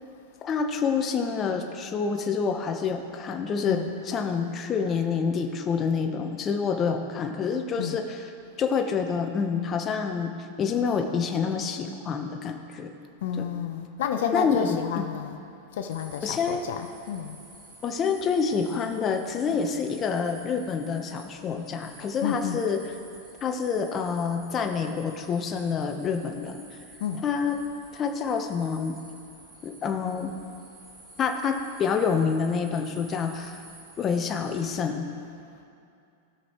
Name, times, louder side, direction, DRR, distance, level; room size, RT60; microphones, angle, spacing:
voice 1, 0.4-8.3 8.6-12.9 13.4-13.5 14.3-15.1 16.2-16.6 17.8-22.8 23.4-26.7 27.2-27.6 27.9-29.0 29.6-30.4 31.2-33.6 34.0-35.1, left 6 dB, 30° left, 4 dB, 0.9 m, -27 dB
voice 2, 13.2-15.4 15.7-17.4 22.2-22.6 27.0-27.3, left 8 dB, 70° left, 6 dB, 0.7 m, -30 dB
sound 1, 15.9-34.7, right 3 dB, 40° right, 2.5 m, -51 dB
17.5 x 6.3 x 3.0 m, 2.6 s
hypercardioid pair, 130°, 0 cm